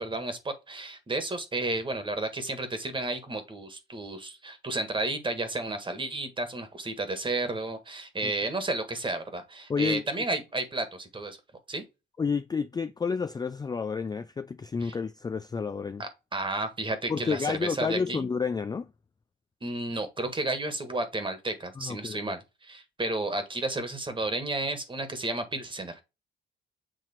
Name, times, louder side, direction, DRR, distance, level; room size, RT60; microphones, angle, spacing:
voice 1, 0.0-11.4 11.7-11.8 14.8-14.9 16.0-18.3 19.6-26.0, right 2 dB, 25° right, 1.7 m, -32 dB
voice 2, 9.7-10.1 12.2-16.0 17.1-18.9 21.8-22.3, left 5 dB, 20° left, 0.4 m, -30 dB
7.7 x 2.9 x 4.4 m
cardioid pair, 90°, 20 cm